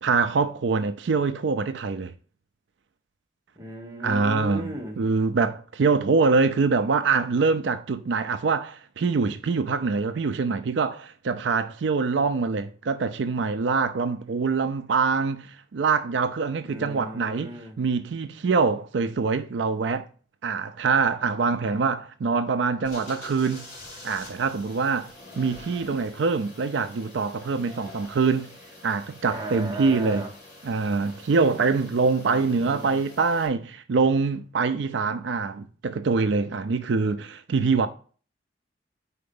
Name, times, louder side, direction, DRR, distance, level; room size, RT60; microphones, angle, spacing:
voice 1, 0.0-2.1 4.0-20.1 20.4-23.7 24.0-28.5 28.8-30.2 30.6-37.9, right 4 dB, 85° right, 0.4 m, -24 dB
voice 2, 3.5-5.0 16.6-17.7 29.3-30.3 32.3-33.0, right 1 dB, 20° right, 1.4 m, -36 dB
sound 1, 22.8-33.5, left 2 dB, 40° left, 2.3 m, -46 dB
4.8 x 4.3 x 5.2 m
head